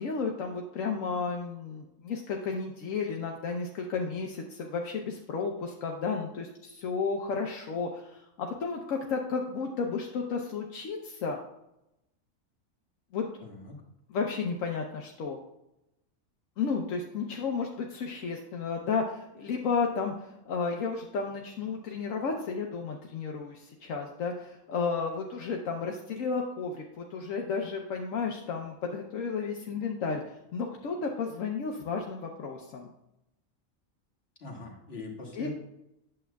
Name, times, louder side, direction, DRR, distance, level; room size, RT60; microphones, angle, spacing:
voice 1, 0.0-11.4 13.1-13.2 14.1-15.4 16.6-32.9 35.3-35.5, left 5 dB, 75° left, 1 dB, 1.1 m, -33 dB
voice 2, 13.4-13.8 34.4-35.5, left 3 dB, 50° left, -1 dB, 1.7 m, -42 dB
8.6 x 7.6 x 2.3 m, 0.87 s
omnidirectional pair, 1.4 m